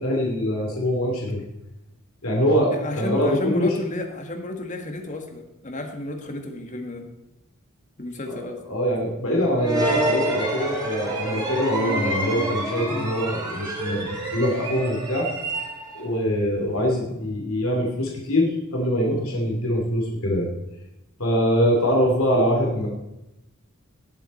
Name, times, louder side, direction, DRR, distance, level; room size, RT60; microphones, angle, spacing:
voice 1, 0.0-1.4 2.2-3.7 8.7-14.1 14.3-15.3 15.9-20.5 21.2-22.9, equal, 75° left, -2 dB, 2.8 m, -23 dB
voice 2, 2.7-7.1 8.0-8.6 12.9-13.1, left 1 dB, 35° left, 4 dB, 1.7 m, -32 dB
sound 1, 9.6-16.1, right 1 dB, 20° right, 3.3 m, -27 dB
18.5 x 7.2 x 4.3 m, 0.91 s
head